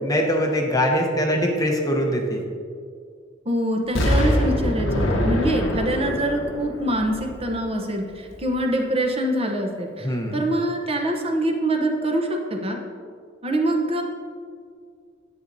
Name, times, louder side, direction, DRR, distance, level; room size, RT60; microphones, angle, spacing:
voice 1, 0.0-2.4 5.0-5.4 10.0-10.4, equal, 20° left, 2 dB, 0.8 m, -23 dB
voice 2, 3.5-12.8 13.4-14.0, right 1 dB, 30° right, 2 dB, 0.8 m, -24 dB
Explosion, 4.0-7.9 8.3-8.4, equal, 75° left, 1.1 m, -24 dB
10.0 x 8.4 x 2.6 m, 2.2 s
head